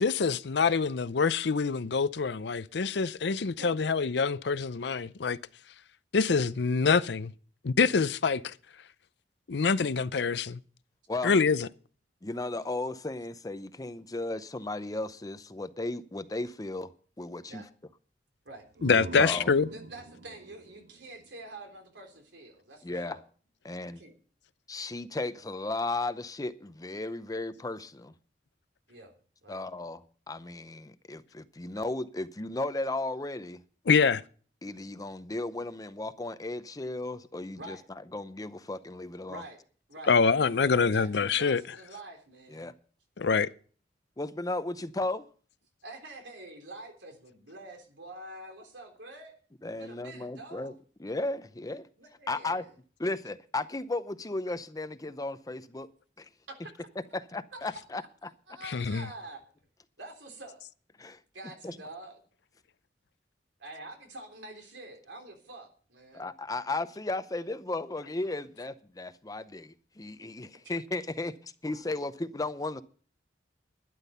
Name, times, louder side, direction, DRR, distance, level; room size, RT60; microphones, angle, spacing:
voice 1, 0.0-5.4 6.1-7.3 7.6-8.5 9.5-10.6 11.2-11.7 18.8-19.7 33.9-34.2 40.1-41.6 43.2-43.5 58.7-59.1, left 5 dB, 65° left, 0.6 m, -25 dB
voice 2, 3.5-3.9 17.5-17.7 18.5-18.7 19.1-23.2 23.9-24.2 28.9-29.6 37.6-37.8 39.3-39.6 39.9-42.6 45.8-49.4 49.8-50.7 52.0-52.7 56.5-56.6 57.5-57.6 58.5-59.4 60.0-60.6 61.3-62.2 63.6-66.3, right 2 dB, 85° right, 3.6 m, -46 dB
voice 3, 12.2-17.6 19.2-19.5 22.8-23.2 23.6-24.0 24.7-28.1 29.5-33.6 34.6-37.8 38.1-39.4 42.5-42.7 44.2-45.3 49.6-50.7 51.0-51.9 52.3-52.7 53.0-55.9 56.2-56.3 57.1-58.3 61.0-61.2 61.6-61.7 66.1-72.8, left 2 dB, 20° left, 0.6 m, -35 dB
sound 1, 18.5-22.2, right 2 dB, 65° right, 0.7 m, -45 dB
12.0 x 11.0 x 5.6 m
head